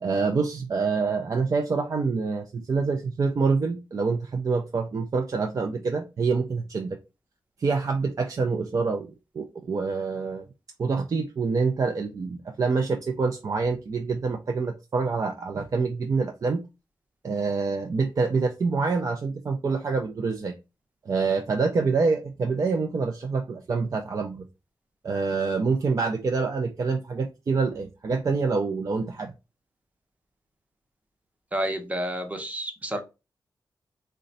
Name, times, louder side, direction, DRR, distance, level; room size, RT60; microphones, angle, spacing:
voice 1, 0.0-7.0 7.6-10.5 10.8-16.6 17.2-20.6 21.1-24.5 25.0-29.3, right 4 dB, 45° right, 0.4 m, -26 dB
voice 2, 31.5-33.0, right 1 dB, 20° right, 0.7 m, -30 dB
3.8 x 2.2 x 3.9 m
wide cardioid pair, 135°, 8 cm